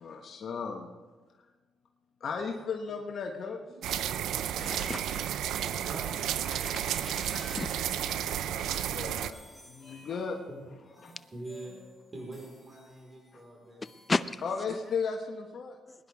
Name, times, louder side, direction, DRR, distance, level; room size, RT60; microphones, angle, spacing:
voice 1, 0.0-0.9 2.2-3.6 8.0-10.4 11.0-11.1 14.4-15.8, left 5 dB, 55° left, 2 dB, 1.3 m, -36 dB
voice 2, 3.6-4.7 5.6-6.2 9.9-10.0 10.5-10.6 10.9-11.8 12.1-13.9, right 2 dB, 30° right, -1 dB, 4.5 m, -46 dB
sound 1, 3.8-9.3, right 10 dB, 80° right, 0.5 m, -32 dB
voice 3, 4.5-5.2 6.6-7.7 14.1-14.4 15.9-16.0, left 3 dB, 25° left, 13 dB, 0.5 m, -34 dB
sound 2, 5.5-15.0, left 1 dB, 5° left, 4.6 m, -55 dB
21.0 x 10.5 x 3.6 m, 1.3 s
cardioid pair, 90°, 0 cm